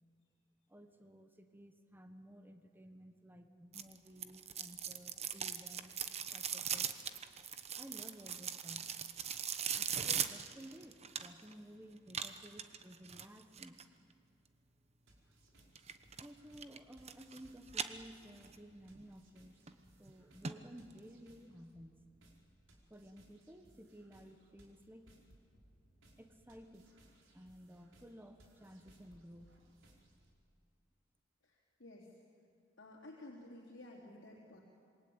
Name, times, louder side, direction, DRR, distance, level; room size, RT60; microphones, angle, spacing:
voice 1, 0.7-5.9 6.3-6.9 7.8-8.9 9.7-13.8 16.2-19.5 20.0-22.1 22.9-25.1 26.2-26.9 27.3-29.6, equal, 10° right, 6 dB, 1.3 m, -55 dB
sound 1, 3.7-11.5 12.1-13.8 15.8-16.3 16.6-17.4 17.7-18.6 19.0-19.1 19.7-19.8 20.1-20.2 20.4-20.5 20.9-21.0, right 8 dB, 35° right, 1.1 m, -40 dB
sound 2, 15.1-30.3, right 1 dB, 80° right, 4.8 m, -66 dB
voice 2, 31.4-32.1 32.8-34.6, left 1 dB, 65° left, -5 dB, 3.8 m, -53 dB
27.0 x 23.0 x 8.9 m, 2.4 s
head